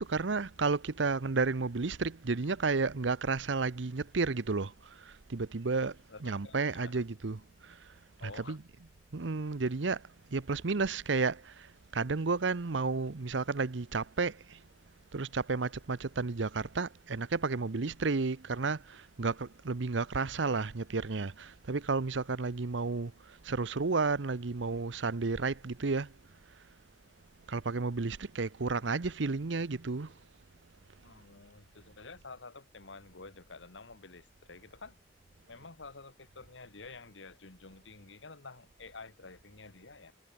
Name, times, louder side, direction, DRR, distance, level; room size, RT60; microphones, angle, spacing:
voice 1, 0.0-4.7 5.3-5.9 6.2-7.4 8.2-8.6 9.1-10.0 10.3-11.4 11.9-14.3 15.1-23.1 23.5-26.1 27.5-30.1, right 4 dB, 75° right, 0.8 m, -32 dB
voice 2, 6.1-7.0 8.2-8.6 31.0-35.0 35.5-40.1, left 3 dB, 80° left, 1.9 m, -50 dB
head